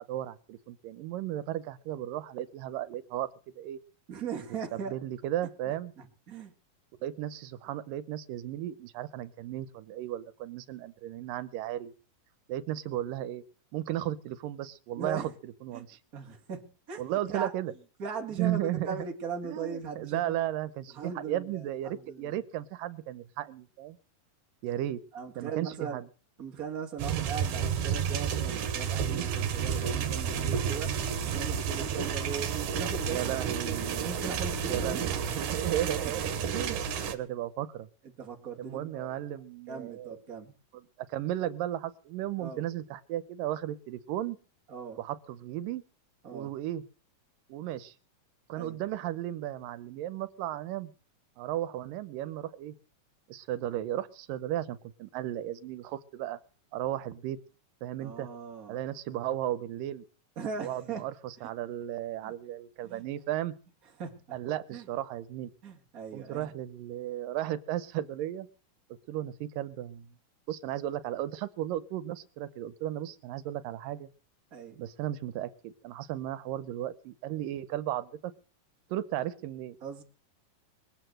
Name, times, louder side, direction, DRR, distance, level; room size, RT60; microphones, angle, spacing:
voice 1, 0.1-3.3 3.6-3.8 4.7-5.9 7.0-11.9 12.5-13.4 13.7-16.0 17.0-17.7 18.4-19.1 19.4-24.0 24.6-25.0 25.4-26.1 33.1-34.2 34.7-37.9 38.6-40.2 40.7-44.4 45.0-45.8 46.3-46.8 47.5-47.9 48.5-50.9 51.4-52.7 53.3-56.4 56.7-57.4 57.8-58.3 58.7-60.1 60.6-63.5 64.3-65.5 66.1-68.5 69.1-70.2 70.5-74.1 74.8-78.3 78.9-79.8, right 13 dB, 90° right, 14 dB, 2.6 m, -35 dB
voice 2, 4.1-5.0 5.7-6.5 15.0-15.3 15.7-15.8 16.1-17.0 17.3-17.5 18.0-20.4 20.9-22.4 25.1-26.0 26.4-30.9 31.3-33.3 33.6-35.0 36.0-36.1 38.2-39.4 39.7-40.5 42.4-42.6 44.7-45.0 46.2-46.5 48.5-48.8 58.0-58.8 60.4-61.1 61.4-61.5 62.2-62.3 62.8-63.0 64.0-64.4 64.7-64.9 65.6-66.5 74.5-74.8 79.8-80.0, right 6 dB, 30° right, 3 dB, 2.4 m, -39 dB
sound 1, 27.0-37.1, right 7 dB, 70° right, 2.8 m, -31 dB
21.0 x 8.1 x 7.8 m, 0.39 s
omnidirectional pair, 3.8 m